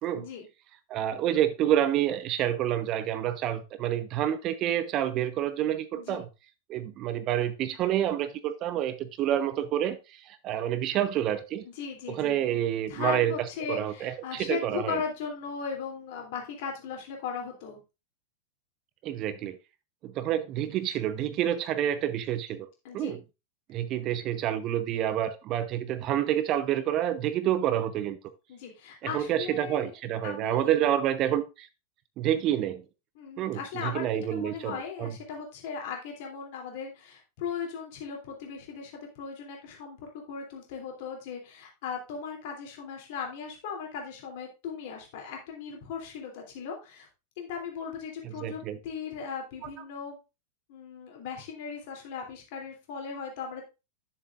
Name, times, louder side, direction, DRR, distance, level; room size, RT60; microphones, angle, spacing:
voice 1, 0.1-0.5 5.9-6.2 11.6-12.4 12.9-17.8 22.8-23.2 28.5-29.9 30.2-30.7 33.1-34.0 34.3-47.1 47.4-50.2 50.7-53.6, left 6 dB, 50° left, 3.0 m, -37 dB
voice 2, 0.9-6.3 6.7-11.6 12.1-13.3 13.7-15.0 19.0-19.6 20.0-22.7 22.9-23.2 23.7-28.2 29.0-31.7 32.2-32.8 33.4-35.1 48.2-48.8 49.6-49.7, right 11 dB, 35° right, 0.7 m, -28 dB
10.5 x 7.2 x 2.5 m
figure-of-eight pair, 90°, 0 cm